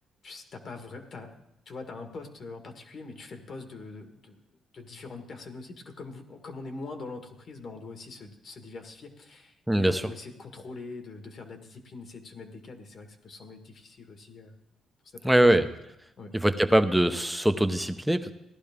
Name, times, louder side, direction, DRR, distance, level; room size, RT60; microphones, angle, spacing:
voice 1, 0.2-1.4 1.6-4.4 4.7-14.5 15.0-15.5 16.2-16.3, left 3 dB, 50° left, 5 dB, 1.7 m, -43 dB
voice 2, 9.7-10.0 15.2-15.7 16.3-18.3, right 1 dB, 5° right, 8 dB, 0.8 m, -22 dB
16.5 x 11.5 x 3.6 m, 0.85 s
cardioid pair, 90°, 0 cm